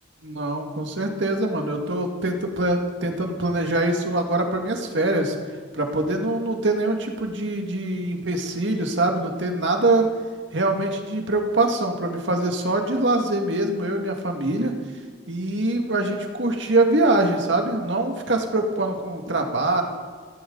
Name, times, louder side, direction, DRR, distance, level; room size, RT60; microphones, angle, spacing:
voice 1, 0.2-5.3 5.7-10.0 10.5-14.7 15.3-19.8, right 2 dB, 70° right, 3 dB, 1.9 m, -23 dB
18.0 x 15.5 x 3.9 m, 1.5 s
head